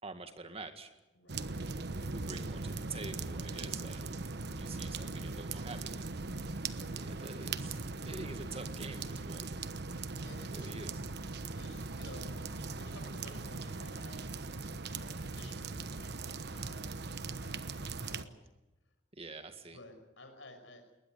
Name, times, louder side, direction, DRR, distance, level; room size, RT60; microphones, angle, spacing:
voice 1, 0.0-0.9 2.1-4.1 4.6-6.1 7.0-9.5 10.5-11.0 19.1-19.8, right 3 dB, 30° right, 7 dB, 1.9 m, -46 dB
voice 2, 1.1-1.7 3.6-4.0 6.7-7.0 9.9-10.7 11.4-12.4 12.8-18.4 19.7-20.9, left 2 dB, 75° left, 6 dB, 5.9 m, -55 dB
sound 1, 1.3-18.3, right 3 dB, 60° right, 1.1 m, -40 dB
21.0 x 19.5 x 9.4 m, 1.0 s
head